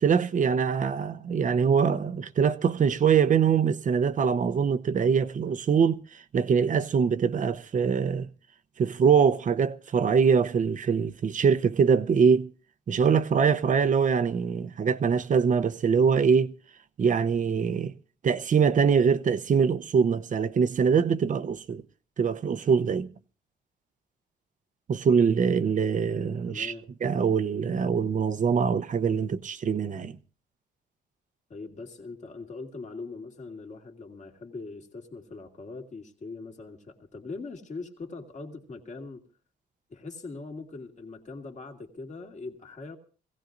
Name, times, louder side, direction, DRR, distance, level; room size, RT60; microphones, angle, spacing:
voice 1, 0.0-6.0 6.3-8.3 8.8-12.5 12.9-16.5 17.0-17.9 18.2-21.8 22.2-23.1 24.9-26.7 27.0-30.1, right 6 dB, 45° right, 0.8 m, -23 dB
voice 2, 26.5-26.9 31.5-39.2 39.9-43.0, left 3 dB, 40° left, 2.5 m, -41 dB
24.0 x 16.5 x 2.6 m
cardioid pair, 95°, 19 cm